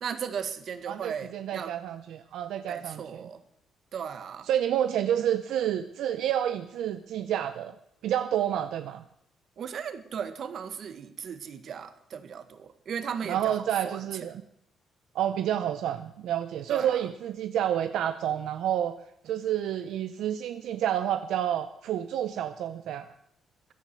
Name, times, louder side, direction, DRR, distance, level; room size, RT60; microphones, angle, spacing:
voice 1, 0.0-1.7 2.7-3.4 3.9-4.5 9.6-14.0 16.7-16.9, right 7 dB, 55° right, 1.5 m, -36 dB
voice 2, 0.9-3.3 4.4-7.7 8.0-9.0 13.2-14.4 15.1-19.0 19.2-23.1, right 10 dB, 80° right, 0.7 m, -29 dB
15.0 x 11.0 x 7.6 m
cardioid pair, 110°, 0 cm